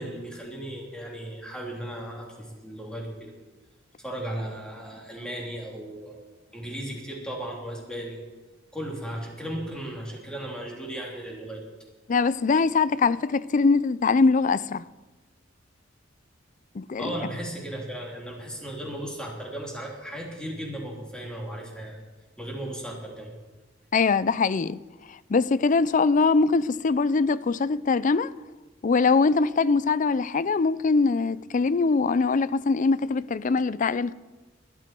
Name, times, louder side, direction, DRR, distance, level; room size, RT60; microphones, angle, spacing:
voice 1, 0.0-3.3 4.0-6.2 6.5-8.2 8.7-11.6 17.0-22.0 22.4-23.3, right 1 dB, 5° left, 3.2 m, -36 dB
voice 2, 12.1-14.8 16.8-17.1 23.9-24.8 25.3-28.3 28.8-34.1, left 4 dB, 40° left, 0.4 m, -22 dB
21.0 x 12.0 x 4.6 m
head